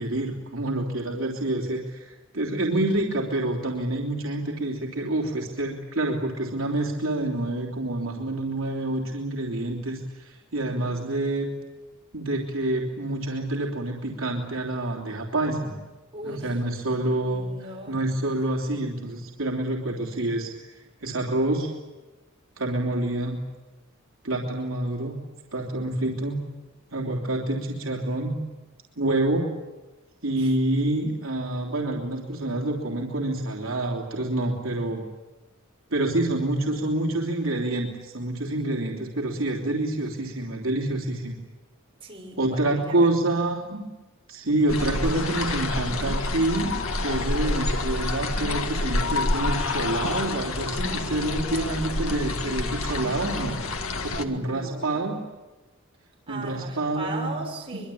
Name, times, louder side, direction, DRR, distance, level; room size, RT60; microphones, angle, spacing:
voice 1, 0.0-11.5 12.1-15.8 16.2-17.4 17.9-20.7 21.0-21.7 22.6-23.4 24.2-25.2 25.5-26.4 26.9-28.3 29.0-29.5 30.2-35.0 35.9-41.4 42.4-43.8 44.3-53.6 54.0-55.2 56.3-57.3, right 2 dB, 70° right, -1 dB, 3.3 m, -27 dB
voice 2, 16.1-16.6 17.1-18.1 18.5-18.6 30.3-30.5 42.0-43.1 54.2-55.0 56.3-57.9, right 2 dB, 25° right, 0 dB, 6.3 m, -38 dB
sound 1, 44.7-54.2, left 2 dB, 80° left, 1.9 m, -28 dB
24.0 x 23.5 x 8.6 m, 1.2 s
head